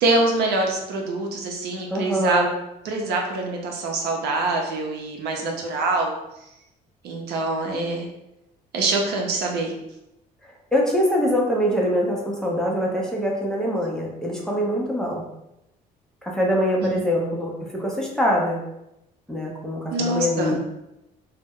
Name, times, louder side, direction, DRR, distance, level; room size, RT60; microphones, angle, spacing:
voice 1, 0.0-2.4 2.8-6.1 7.0-8.1 8.7-9.7 16.8-16.9 19.9-20.6, right 2 dB, 75° right, 0 dB, 0.6 m, -24 dB
voice 2, 1.9-2.5 10.4-15.2 16.2-18.6 19.3-20.6, equal, 5° left, -3 dB, 0.5 m, -24 dB
2.1 x 2.0 x 3.5 m, 0.87 s
cardioid pair, 110°, 17 cm